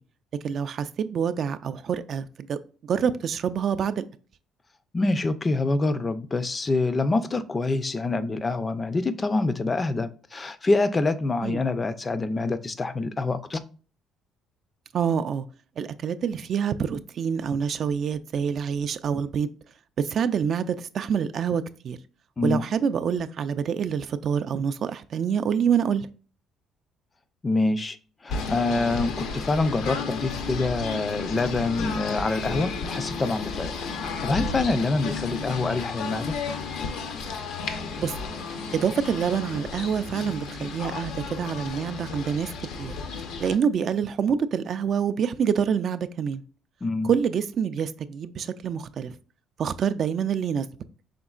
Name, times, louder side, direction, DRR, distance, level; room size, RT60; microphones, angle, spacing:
voice 1, 0.4-4.0 11.4-11.6 14.9-15.5 15.8-19.5 20.0-22.0 22.4-26.1 34.4-34.6 35.3-35.4 37.7-38.2 38.7-43.0 43.4-46.4 47.0-49.2 49.6-50.7, right 7 dB, 50° right, 0.3 m, -26 dB
voice 2, 4.9-13.6 22.4-22.6 27.4-28.0 28.2-33.7 34.0-36.4 46.8-47.1, left 3 dB, 25° left, 0.4 m, -26 dB
Singing / Bird, 28.3-43.5, left 4 dB, 75° left, 0.6 m, -33 dB
5.1 x 3.6 x 2.4 m
cardioid pair, 115°, 0 cm